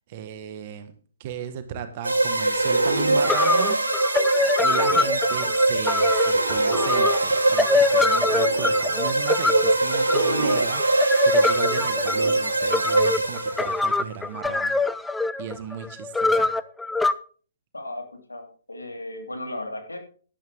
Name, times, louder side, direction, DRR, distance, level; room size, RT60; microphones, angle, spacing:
voice 1, 0.1-0.9 1.2-3.8 4.4-14.8 15.4-16.5, right 8 dB, 40° right, 9 dB, 1.5 m, -35 dB
sound 1, 2.0-13.8, right 2 dB, 85° right, 2.7 m, -22 dB
sound 2, 2.9-3.0 3.2-17.1, left 3 dB, 5° left, 0.5 m, -25 dB
voice 2, 17.7-20.0, left 1 dB, 85° left, 4 dB, 2.9 m, -35 dB
12.0 x 11.5 x 3.6 m, 0.42 s
figure-of-eight pair, 125°, 0 cm